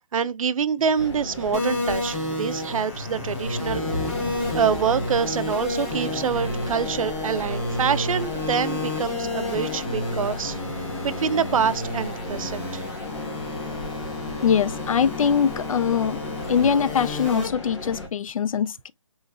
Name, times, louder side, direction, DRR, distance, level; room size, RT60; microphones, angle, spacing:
voice 1, 0.1-3.8 4.5-10.6 11.0-12.8, right 7 dB, 85° right, 0.4 m, -26 dB
sound 1, 0.8-12.6, left 1 dB, 10° left, 0.7 m, -44 dB
sound 2, 1.0-18.1, left 2 dB, 55° left, 1.2 m, -35 dB
sound 3, 1.5-17.5, left 2 dB, 25° left, 1.2 m, -31 dB
voice 2, 14.4-16.2 16.5-18.9, left 7 dB, 80° left, 0.4 m, -22 dB
3.9 x 3.1 x 2.3 m
hypercardioid pair, 175°, 17 cm